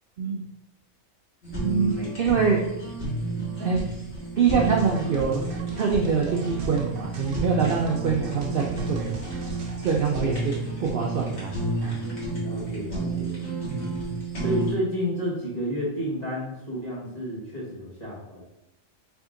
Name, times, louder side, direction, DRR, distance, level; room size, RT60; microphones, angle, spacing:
Fire, 1.4-14.7, right 3 dB, 55° left, 1.6 m, -31 dB
voice 1, 1.6-2.6 3.4-3.9 4.4-5.5 5.8-9.1 9.8-10.5 10.8-11.5 11.8-12.0 13.7-14.1, right 5 dB, 60° right, -1 dB, 0.6 m, -25 dB
sound 1, 4.6-10.4, right 4 dB, 85° right, 1.1 m, -41 dB
voice 2, 12.3-13.4 14.4-18.4, equal, 30° left, -6 dB, 1.3 m, -31 dB
3.5 x 2.8 x 3.7 m, 0.84 s
omnidirectional pair, 1.3 m